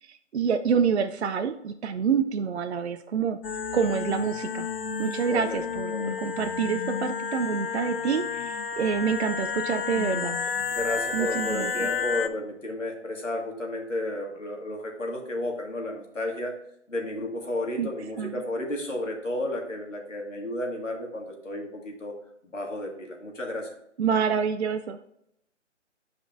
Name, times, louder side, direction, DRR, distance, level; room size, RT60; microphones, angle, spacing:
voice 1, 0.0-3.4 3.7-4.7 5.0-10.4 11.1-11.9 17.8-17.9 18.2-18.4 24.0-25.0, right 6 dB, 65° right, 8 dB, 0.5 m, -27 dB
sound 1, 3.4-12.3, left 6 dB, 50° left, 0.4 m, -31 dB
voice 2, 5.3-5.6 5.9-6.1 10.7-16.5 16.9-22.1 22.4-23.7, left 1 dB, 85° left, 1 dB, 2.0 m, -32 dB
9.2 x 5.1 x 2.6 m, 0.77 s
figure-of-eight pair, 150°, 37 cm